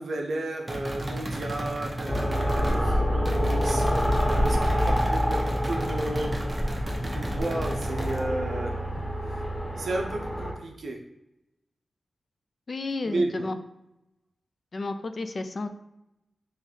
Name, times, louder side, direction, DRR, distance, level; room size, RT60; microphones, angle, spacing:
voice 1, 0.0-3.8 4.3-8.8 9.8-11.1 13.0-13.5, right 2 dB, 75° right, 1 dB, 0.5 m, -33 dB
sound 1, 0.7-2.8 3.2-8.2, right 1 dB, 25° right, 0.7 m, -34 dB
sound 2, 2.1-10.5, equal, 20° left, 0.6 m, -27 dB
voice 2, 12.7-13.6 14.7-15.7, left 3 dB, 55° left, 9 dB, 0.3 m, -32 dB
3.6 x 3.0 x 3.2 m, 0.87 s
wide cardioid pair, 70°, 0 cm